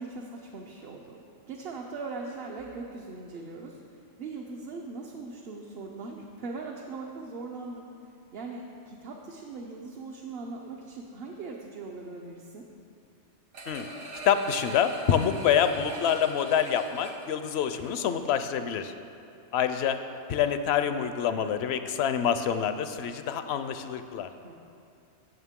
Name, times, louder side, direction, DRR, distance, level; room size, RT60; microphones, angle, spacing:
voice 1, 0.0-7.9 8.3-12.6 24.4-24.5, right 3 dB, 60° right, -1 dB, 0.9 m, -40 dB
sound 1, 13.5-18.3 18.7-18.8, right 1 dB, 85° right, 1.4 m, -42 dB
voice 2, 14.2-18.9 19.5-20.0 20.3-24.3, left 8 dB, 70° left, 10 dB, 0.8 m, -26 dB
15.5 x 6.4 x 3.6 m, 2.7 s
omnidirectional pair, 1.2 m